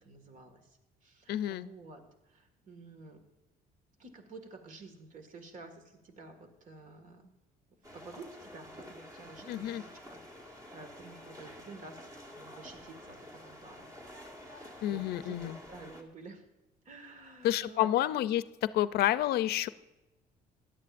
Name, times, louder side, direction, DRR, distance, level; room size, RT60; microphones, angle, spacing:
voice 1, 0.0-3.2 4.0-7.3 7.9-13.9 14.4-16.4 16.8-17.9, right 3 dB, 50° right, 7 dB, 1.9 m, -51 dB
voice 2, 1.3-1.7 9.5-9.8 14.8-15.6 17.4-19.7, left 13 dB, 70° left, 15 dB, 0.5 m, -29 dB
sound 1, 7.8-16.0, left 1 dB, 20° right, 1.9 m, -50 dB
16.0 x 11.0 x 2.5 m, 1.0 s
cardioid pair, 110°, 17 cm